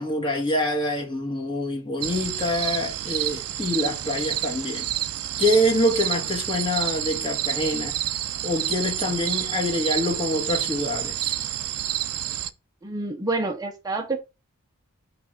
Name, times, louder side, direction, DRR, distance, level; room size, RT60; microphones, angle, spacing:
voice 1, 0.0-4.8 5.4-8.0 8.4-11.3, left 1 dB, 20° left, 1.8 m, -25 dB
sound 1, 2.0-12.5, right 13 dB, 75° right, 0.5 m, -29 dB
voice 2, 12.8-14.2, right 3 dB, 15° right, 0.7 m, -28 dB
5.9 x 3.4 x 5.1 m
head